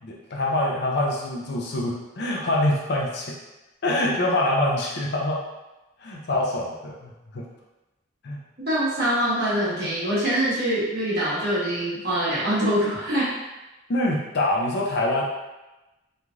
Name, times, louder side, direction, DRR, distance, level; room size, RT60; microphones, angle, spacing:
voice 1, 0.0-3.3 3.8-5.4 6.0-7.4 8.2-8.4 13.9-15.2, left 1 dB, 55° left, -2 dB, 0.5 m, -25 dB
voice 2, 8.6-13.3, right 1 dB, 50° right, -10 dB, 1.2 m, -24 dB
3.1 x 2.5 x 2.3 m, 1.0 s
head